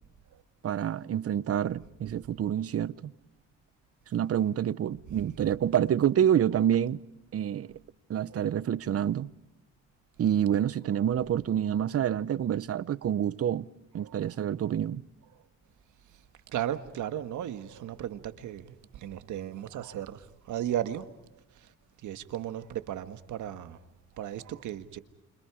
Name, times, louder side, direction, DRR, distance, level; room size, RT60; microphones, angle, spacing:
voice 1, 0.6-3.1 4.1-7.0 7.3-7.7 8.1-9.3 10.2-13.7 13.9-15.0, right 10 dB, 50° right, 0.8 m, -27 dB
voice 2, 16.5-18.8 19.0-20.2 20.5-21.1 22.0-23.8 24.2-25.0, right 11 dB, 75° right, 1.6 m, -35 dB
30.0 x 27.0 x 4.9 m
cardioid pair, 90°, 30 cm